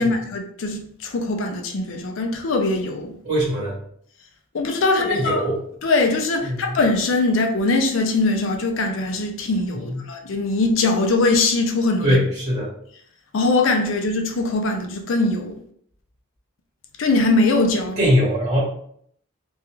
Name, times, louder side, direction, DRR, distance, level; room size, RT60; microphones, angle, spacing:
voice 1, 0.0-3.1 4.5-5.4 5.8-12.2 13.3-15.6 17.0-18.1, left 2 dB, 65° left, 4 dB, 0.4 m, -21 dB
voice 2, 3.2-3.8 5.1-5.6 6.4-6.8 9.7-10.0 12.0-12.7 18.0-18.6, equal, 30° right, -7 dB, 1.1 m, -21 dB
2.4 x 2.3 x 3.0 m, 0.65 s
head